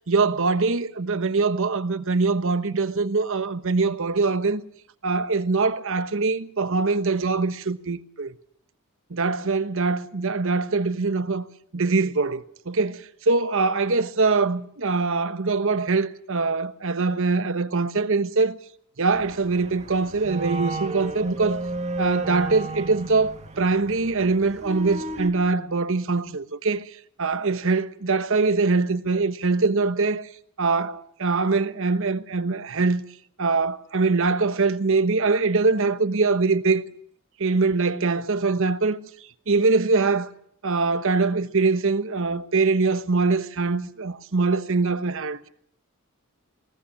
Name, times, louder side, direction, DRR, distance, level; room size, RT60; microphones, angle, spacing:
voice 1, 0.1-4.6 5.0-8.3 9.1-11.4 11.7-18.6 19.0-21.6 22.0-30.3 30.6-33.0 33.4-36.8 37.4-39.1 39.5-40.3 40.6-45.5, right 3 dB, 65° right, 1.1 m, -23 dB
sound 1, 19.1-25.3, right 2 dB, 30° right, 1.7 m, -33 dB
20.0 x 19.0 x 8.6 m
head